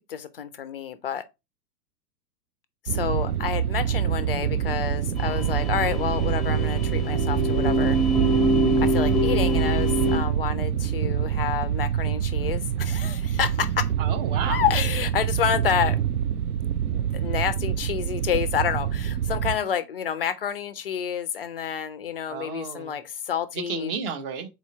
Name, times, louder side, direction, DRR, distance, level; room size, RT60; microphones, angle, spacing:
voice 1, 0.1-1.2 2.8-8.0 8.8-13.9 14.5-16.0 16.8-23.9, left 8 dB, 40° left, 0.4 m, -29 dB
sound 1, 2.9-19.6, right 9 dB, 65° right, 0.5 m, -26 dB
sound 2, 5.2-10.2, right 2 dB, ahead, 0.7 m, -24 dB
voice 2, 14.0-14.6 22.3-22.9 23.5-24.5, right 6 dB, 35° right, 0.9 m, -32 dB
4.2 x 2.8 x 4.2 m
figure-of-eight pair, 100°, 50 cm